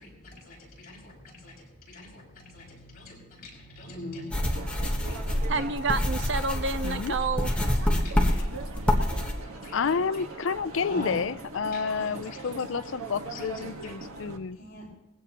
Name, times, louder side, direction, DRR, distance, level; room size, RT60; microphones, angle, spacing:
voice 1, 0.0-2.9 3.6-5.6 7.2-8.5 8.8-9.8 10.7-11.1 11.7-12.6 12.9-13.0 13.8-14.0 14.6-14.9, left 1 dB, 40° left, 6.0 m, -43 dB
sound 1, 4.3-9.3, left 1 dB, 5° left, 1.2 m, -27 dB
sound 2, 4.4-14.4, right 3 dB, 90° right, 1.4 m, -41 dB
voice 2, 5.5-7.5, right 3 dB, 55° right, 0.7 m, -29 dB
voice 3, 6.8-7.2 8.3-8.5 9.7-14.6, left 5 dB, 65° left, 0.4 m, -30 dB
20.5 x 16.0 x 2.9 m
head